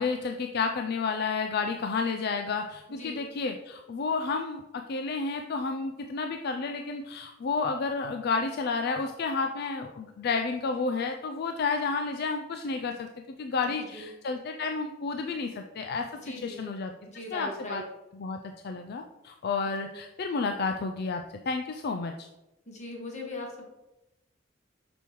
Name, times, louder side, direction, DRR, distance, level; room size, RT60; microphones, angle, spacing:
voice 1, 0.0-13.1 13.4-16.1 16.4-16.9 17.3-17.8 18.2-18.4 18.6-22.3, left 4 dB, 55° left, 5 dB, 0.4 m, -31 dB
voice 2, 13.8-14.1 16.2-16.7 17.1-17.8 19.8-20.0 22.6-23.6, left 2 dB, 35° left, -1 dB, 1.7 m, -40 dB
6.7 x 6.1 x 3.1 m, 0.96 s
head